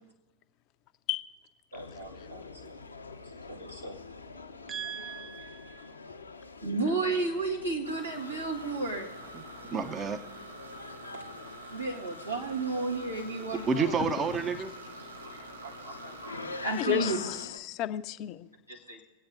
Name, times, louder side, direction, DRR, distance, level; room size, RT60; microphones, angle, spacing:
sound 1, 1.7-17.6, left 3 dB, 80° left, 0.6 m, -46 dB
voice 1, 1.7-2.7 3.5-4.0 6.6-9.1 11.7-14.0 15.2-17.2 18.7-19.0, right 3 dB, 90° right, -3 dB, 1.7 m, -33 dB
voice 2, 4.7-5.9 9.3-9.4 9.7-10.2 13.7-14.7, right 5 dB, 25° right, 10 dB, 0.6 m, -31 dB
sound 2, 7.8-17.5, right 2 dB, 70° right, 0.9 m, -47 dB
voice 3, 16.8-18.5, left 14 dB, 40° left, 12 dB, 0.5 m, -32 dB
25.0 x 8.5 x 2.7 m, 1.3 s
figure-of-eight pair, 90°, 0 cm